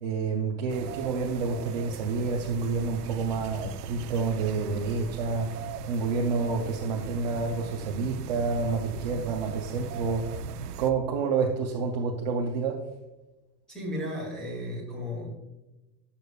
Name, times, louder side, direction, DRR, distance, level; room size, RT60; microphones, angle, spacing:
voice 1, 0.0-12.8, right 4 dB, 30° right, 0 dB, 0.4 m, -29 dB
sound 1, 0.7-10.9, right 8 dB, 65° right, 0.8 m, -40 dB
voice 2, 13.7-15.3, left 1 dB, ahead, -4 dB, 1.9 m, -34 dB
12.5 x 6.8 x 2.3 m, 1.0 s
supercardioid pair, 180°, 49 cm